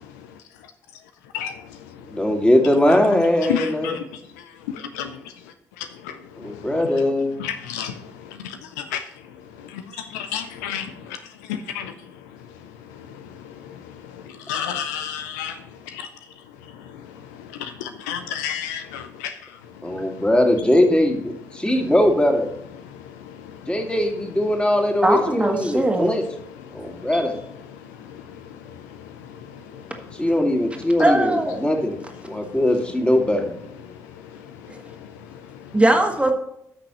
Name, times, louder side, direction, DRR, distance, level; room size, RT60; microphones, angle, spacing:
voice 1, 0.0-2.5 2.9-20.6 21.5-21.9 22.7-24.9 25.6-25.7 26.1-31.1 31.6-35.8, left 8 dB, 75° left, 0.5 m, -35 dB
voice 2, 2.1-3.9 6.4-7.4 9.9-10.0 19.8-22.5 23.7-26.2 26.7-27.4 30.2-32.0 32.3-33.5, left 1 dB, 10° left, 2.3 m, -20 dB
voice 3, 25.0-26.1 27.1-27.2 31.0-31.6 34.7-34.8 35.7-36.3, right 1 dB, 15° right, 1.8 m, -20 dB
14.0 x 6.1 x 3.0 m
figure-of-eight pair, 45°, 9 cm